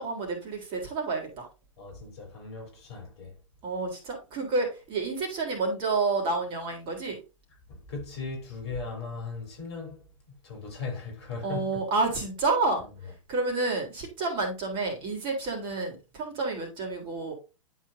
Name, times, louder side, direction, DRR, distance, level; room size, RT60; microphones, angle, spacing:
voice 1, 0.0-1.5 3.6-7.2 11.4-17.3, right 3 dB, 30° right, 3.5 m, -29 dB
voice 2, 1.8-3.3 7.7-10.1 10.4-11.8 12.8-12.9, left 4 dB, 50° left, 3.9 m, -38 dB
11.5 x 4.6 x 2.7 m
figure-of-eight pair, 105°, 17 cm